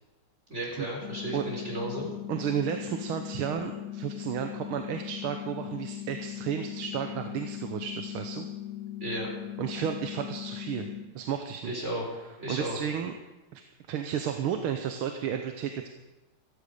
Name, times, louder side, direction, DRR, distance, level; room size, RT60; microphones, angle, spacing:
voice 1, 0.5-2.1 9.0-9.3 11.6-12.1 12.4-12.8, right 1 dB, 30° right, -2 dB, 4.6 m, -34 dB
sound 1, 1.0-11.0, left 12 dB, 90° left, 3.2 m, -39 dB
voice 2, 2.3-8.5 9.6-11.8 12.5-13.1 13.5-13.6 13.9-15.9, right 8 dB, 80° right, 5 dB, 1.8 m, -32 dB
15.0 x 15.0 x 5.1 m, 1.1 s
omnidirectional pair, 2.3 m